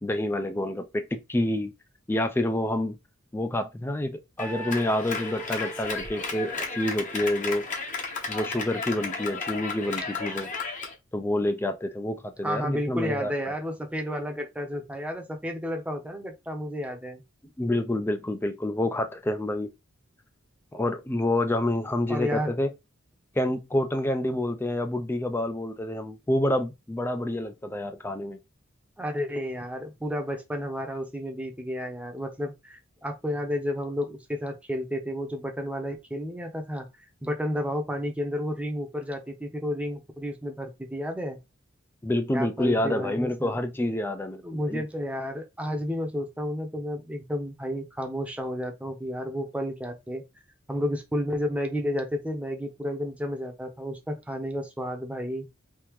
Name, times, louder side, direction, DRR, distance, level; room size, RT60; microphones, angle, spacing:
voice 1, 0.0-1.7 2.1-3.0 3.3-7.7 8.3-10.5 11.1-13.3 17.6-19.7 20.7-22.7 23.4-28.4 42.0-44.4 44.7-44.8, left 1 dB, 10° left, 0.3 m, -28 dB
Clapping, 4.4-10.9, left 3 dB, 40° left, 0.9 m, -33 dB
voice 2, 12.4-17.2 22.1-22.5 29.0-36.9 37.2-41.4 42.3-43.6 44.4-50.2 50.7-55.5, equal, 5° right, 0.7 m, -31 dB
3.5 x 2.7 x 3.0 m
head